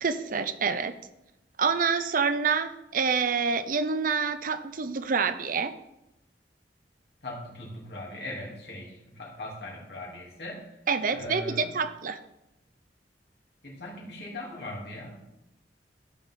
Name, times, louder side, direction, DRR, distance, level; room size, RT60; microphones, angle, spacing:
voice 1, 0.0-0.9 1.6-5.7 10.9-12.2, right 5 dB, 50° right, 11 dB, 0.5 m, -27 dB
voice 2, 7.2-10.6 11.1-11.7 13.6-15.2, left 1 dB, 65° left, -2 dB, 2.7 m, -39 dB
14.0 x 5.2 x 3.7 m, 0.88 s
head